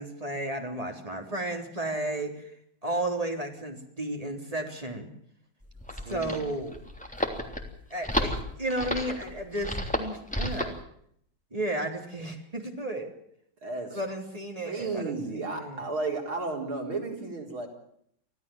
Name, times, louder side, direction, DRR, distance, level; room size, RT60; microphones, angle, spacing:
voice 1, 0.0-2.5 2.8-5.1 6.1-6.8 7.9-10.8 11.5-13.1 13.9-15.8, right 1 dB, 15° right, 2 dB, 3.8 m, -33 dB
sound 1, 5.6-10.8, equal, 5° left, 3.1 m, -32 dB
voice 2, 6.1-6.4 13.6-14.0 14.6-17.7, right 3 dB, 85° right, 2 dB, 5.1 m, -33 dB
26.0 x 16.0 x 7.2 m, 0.68 s
omnidirectional pair, 2.2 m